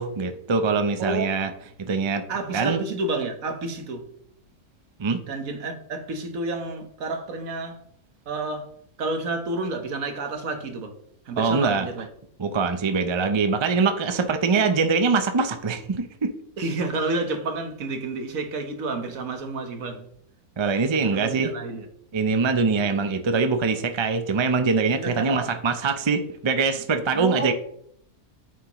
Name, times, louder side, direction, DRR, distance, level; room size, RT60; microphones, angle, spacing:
voice 1, 0.0-1.5 1.8-2.2 2.5-2.8 5.0-5.2 11.4-11.9 12.4-16.3 20.6-21.5 22.1-27.5, right 4 dB, 50° right, 0.3 m, -23 dB
voice 2, 1.0-1.3 2.3-4.1 5.3-7.8 8.3-8.7 9.0-10.9 11.3-12.1 16.6-20.1 21.0-21.9 25.0-25.5 27.1-27.5, right 3 dB, 65° right, 1.5 m, -30 dB
9.3 x 7.3 x 3.0 m
omnidirectional pair, 1.6 m